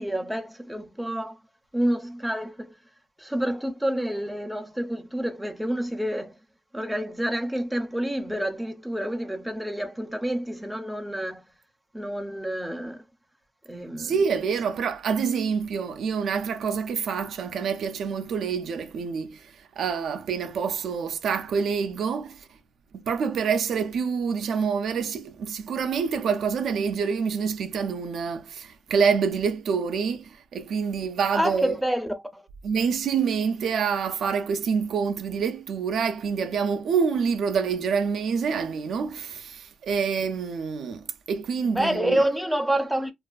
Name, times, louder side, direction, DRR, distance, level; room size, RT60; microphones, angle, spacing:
voice 1, 0.0-1.3 1.7-2.7 3.2-6.3 6.7-11.4 11.9-13.0 13.7-14.1 31.3-32.4 41.7-43.1, right 1 dB, ahead, 0.5 m, -28 dB
voice 2, 14.0-19.5 19.8-22.5 22.9-31.8 32.6-42.2, right 6 dB, 70° right, 0.3 m, -27 dB
2.4 x 2.4 x 2.2 m
wide cardioid pair, 135°, 0 cm